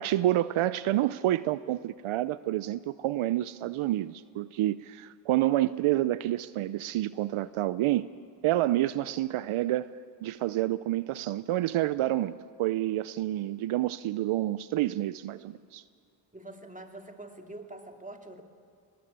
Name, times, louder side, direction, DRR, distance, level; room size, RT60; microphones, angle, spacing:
voice 1, 0.0-8.1 8.4-12.3 12.6-15.8, right 14 dB, 75° right, 16 dB, 0.6 m, -28 dB
voice 2, 16.3-18.4, right 2 dB, 15° right, 5 dB, 2.5 m, -45 dB
21.5 x 19.5 x 8.7 m, 2.1 s
cardioid pair, 60°, 50 cm